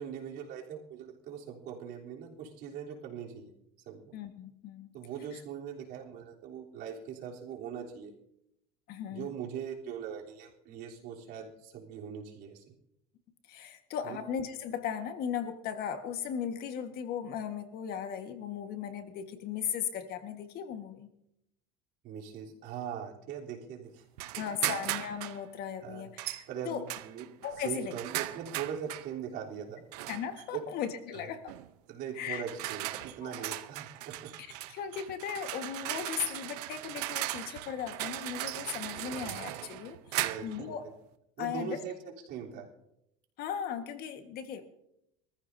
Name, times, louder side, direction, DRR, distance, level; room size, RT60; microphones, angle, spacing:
voice 1, 0.0-3.5 3.9-4.1 4.9-8.1 9.1-12.7 14.0-14.2 22.0-24.0 25.8-26.1 26.5-27.3 27.6-29.8 30.5-30.7 31.1-31.2 31.9-34.4 39.1-39.5 40.2-40.8 41.4-42.7, right 8 dB, 55° right, -2 dB, 3.5 m, -41 dB
voice 2, 4.1-4.9 5.3-5.4 8.9-9.3 13.5-21.1 24.4-26.8 27.4-27.9 30.1-31.5 32.1-32.4 33.2-33.4 34.7-40.8 41.4-41.8 43.4-44.6, left 8 dB, 55° left, 7 dB, 1.5 m, -37 dB
sound 1, 24.2-25.4 26.2-26.4 26.9-29.1 29.9-30.4 31.5-31.7 32.3-40.6, right 16 dB, 85° right, 0.8 m, -38 dB
24.5 x 14.5 x 2.7 m, 0.80 s
supercardioid pair, 125°, 20 cm